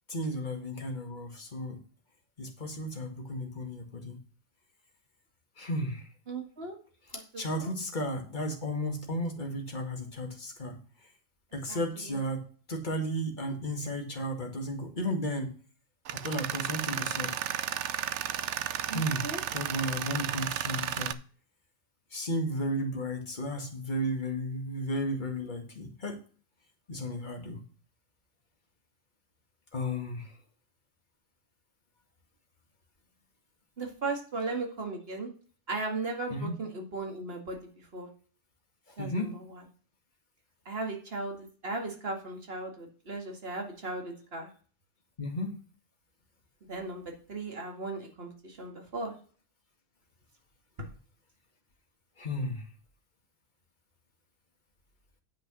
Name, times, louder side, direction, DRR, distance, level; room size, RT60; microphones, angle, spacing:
voice 1, 0.1-1.8 2.4-4.2 5.6-6.1 7.1-10.8 11.5-12.4 12.7-15.5 16.2-17.3 18.9-21.2 22.1-26.2 26.9-27.6 29.7-30.3 36.3-36.6 38.9-39.3 45.2-45.5 52.2-52.6, equal, 35° left, 2 dB, 2.0 m, -34 dB
voice 2, 6.3-6.8 7.1-7.7 11.7-12.2 18.9-19.4 33.8-35.3 35.7-37.6 37.9-38.1 39.0-39.6 40.7-44.5 46.7-47.0 47.3-49.1, right 3 dB, 50° right, 2 dB, 2.4 m, -37 dB
Tools, 16.0-21.1, right 10 dB, 70° right, 0.9 m, -33 dB
8.9 x 5.2 x 6.2 m, 0.41 s
omnidirectional pair, 1.3 m